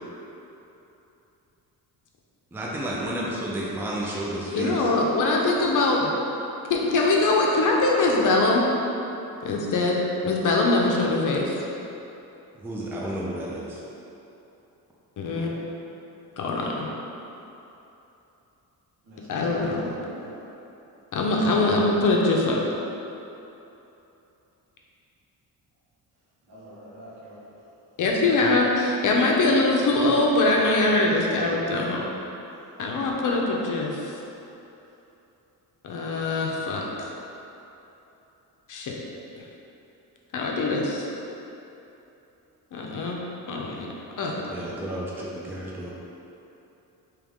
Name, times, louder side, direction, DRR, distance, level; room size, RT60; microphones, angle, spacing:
voice 1, 2.5-4.9 12.6-13.8 44.3-45.9, right 1 dB, 5° right, -5 dB, 0.4 m, -31 dB
voice 2, 4.5-6.1 6.7-8.7 9.4-11.5 15.2-15.5 16.4-16.9 19.3-19.9 21.1-22.6 28.0-32.1 32.8-34.1 35.8-36.8 38.7-39.0 40.3-41.0 42.7-43.2 43.5-43.9 44.2-44.3 44.6-44.7, left 2 dB, 55° left, -1 dB, 0.6 m, -23 dB
voice 3, 19.1-19.7 19.9-20.4 26.5-27.6, right 1 dB, 75° right, -9 dB, 1.4 m, -43 dB
3.5 x 3.0 x 3.5 m, 3.0 s
cardioid pair, 110°, 39 cm